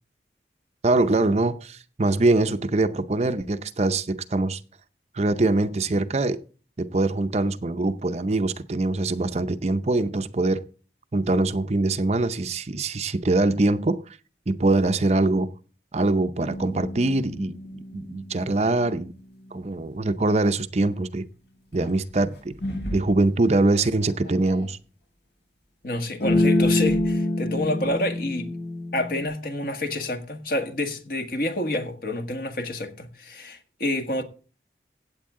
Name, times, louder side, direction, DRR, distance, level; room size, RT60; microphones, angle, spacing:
voice 1, 0.8-4.6 5.1-6.4 6.8-10.6 11.1-14.0 14.5-15.5 15.9-17.6 17.9-19.1 19.5-21.3 21.7-22.6 22.9-24.8, right 2 dB, 35° right, 0.6 m, -23 dB
sound 1, 16.4-18.8 21.8-21.9 22.6-23.1 23.8-24.7 26.2-29.3, left 1 dB, 80° left, 6.2 m, -27 dB
voice 2, 25.8-28.5 28.9-34.2, left 1 dB, 55° left, 1.6 m, -28 dB
16.0 x 8.1 x 3.7 m
head